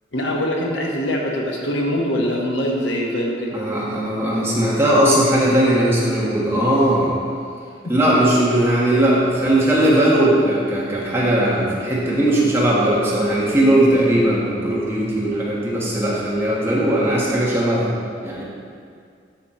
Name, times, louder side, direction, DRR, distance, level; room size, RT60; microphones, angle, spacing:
voice 1, 0.1-3.6 7.8-7.9, equal, 80° left, -1 dB, 1.2 m, -23 dB
voice 2, 3.5-7.1 7.9-17.9 18.2-18.4, right 1 dB, 15° right, -6 dB, 1.4 m, -18 dB
11.5 x 4.3 x 4.3 m, 2.2 s
head